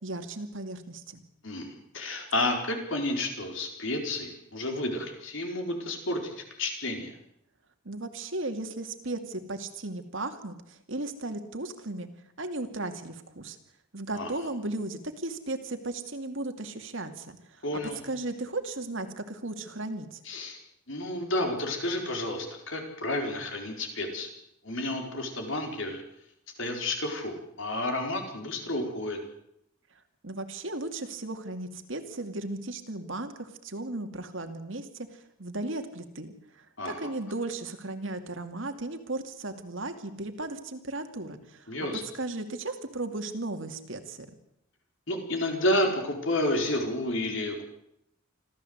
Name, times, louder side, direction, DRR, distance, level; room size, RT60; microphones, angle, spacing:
voice 1, 0.0-1.2 7.8-12.1 12.4-13.6 13.9-17.6 18.0-20.2 30.2-41.7 42.1-44.3, right 2 dB, 60° right, 6 dB, 2.5 m, -36 dB
voice 2, 1.4-7.1 14.1-14.3 17.6-18.0 20.2-20.6 20.9-24.3 24.6-26.0 26.6-29.2 36.8-37.1 41.7-42.0 45.1-47.6, left 1 dB, 60° left, 4 dB, 4.7 m, -31 dB
26.0 x 15.0 x 8.1 m, 0.80 s
head